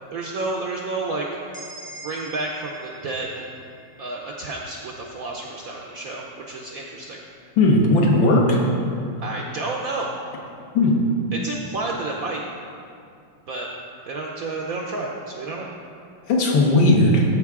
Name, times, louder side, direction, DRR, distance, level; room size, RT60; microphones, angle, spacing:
voice 1, 0.1-1.3 1.9-3.5 4.0-7.2 9.2-10.1 11.3-12.4 13.5-13.7 14.1-15.7, right 3 dB, 70° right, -1 dB, 0.8 m, -30 dB
sound 1, 1.5-5.3, right 2 dB, 5° left, 0.7 m, -44 dB
voice 2, 7.6-8.6 10.7-11.0 16.3-17.2, left 2 dB, 75° left, -1 dB, 1.8 m, -17 dB
13.0 x 4.8 x 3.6 m, 2.4 s
omnidirectional pair, 2.1 m